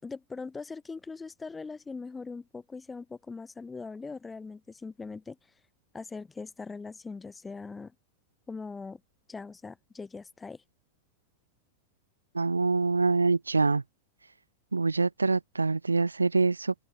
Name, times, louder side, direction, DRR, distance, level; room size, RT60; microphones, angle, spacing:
voice 1, 0.0-5.6 5.9-7.9 8.5-9.0 9.3-10.6, left 4 dB, 10° left, 4.3 m, -41 dB
voice 2, 12.3-13.8 14.7-16.7, right 3 dB, 80° right, 0.6 m, -25 dB
figure-of-eight pair, 90°, 0 cm